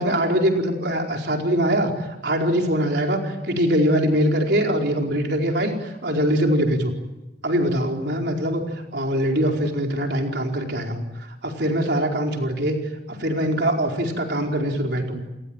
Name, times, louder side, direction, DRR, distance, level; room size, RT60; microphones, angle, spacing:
voice 1, 0.0-6.9 7.4-8.6 8.9-11.0 11.4-12.8 13.1-15.2, equal, 55° right, 2 dB, 4.7 m, -22 dB
29.5 x 22.0 x 9.1 m, 0.97 s
head